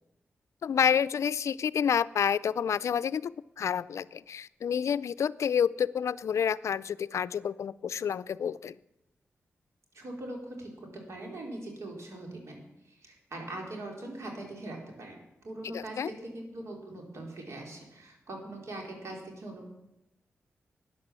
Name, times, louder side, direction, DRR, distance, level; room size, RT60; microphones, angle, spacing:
voice 1, 0.6-8.8 15.7-16.1, left 8 dB, 75° left, 18 dB, 0.4 m, -29 dB
voice 2, 9.9-19.7, right 1 dB, 70° right, 1 dB, 4.4 m, -42 dB
13.0 x 9.5 x 7.6 m, 0.89 s
cardioid pair, 55°, 5 cm